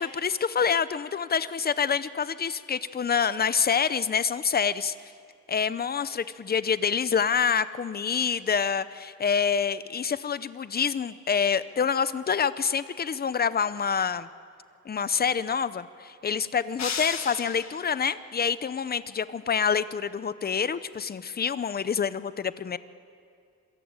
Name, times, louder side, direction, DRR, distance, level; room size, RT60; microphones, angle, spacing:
voice 1, 0.0-4.9 5.5-14.3 14.9-22.8, left 6 dB, 30° left, 15 dB, 0.6 m, -27 dB
sound 1, 16.8-18.0, left 6 dB, 65° left, 1.7 m, -34 dB
27.0 x 22.0 x 8.9 m, 2.3 s
wide cardioid pair, 170°, 30 cm